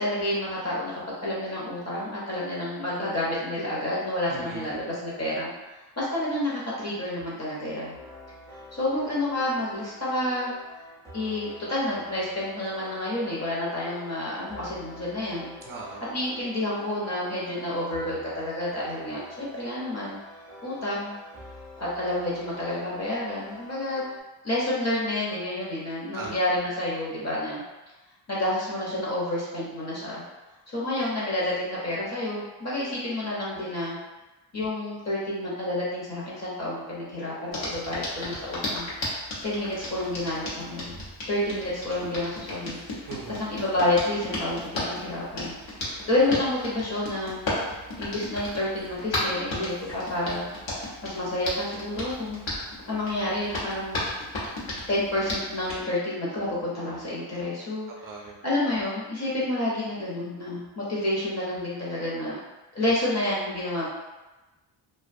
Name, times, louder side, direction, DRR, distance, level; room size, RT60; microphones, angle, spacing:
voice 1, 0.0-5.5 6.0-8.0 8.7-10.5 11.1-15.6 16.1-20.2 20.6-21.2 21.8-24.0 24.4-27.6 28.3-30.2 30.7-34.0 34.5-38.9 39.4-40.9 41.3-42.8 43.4-47.4 48.0-50.5 51.0-52.4 52.9-54.1 54.9-57.9 58.4-62.4 62.7-63.9, left 1 dB, 35° left, -6 dB, 0.8 m, -29 dB
voice 2, 4.3-4.8 15.7-16.0 26.1-26.4 43.1-43.4 58.0-58.4, right 4 dB, 45° right, -2 dB, 0.5 m, -38 dB
sound 1, 7.9-24.2, left 1 dB, 5° left, 0.5 m, -46 dB
Hands, 37.5-55.8, left 1 dB, 75° left, 0.9 m, -35 dB
2.5 x 2.3 x 2.5 m, 1.1 s
wide cardioid pair, 145°, 47 cm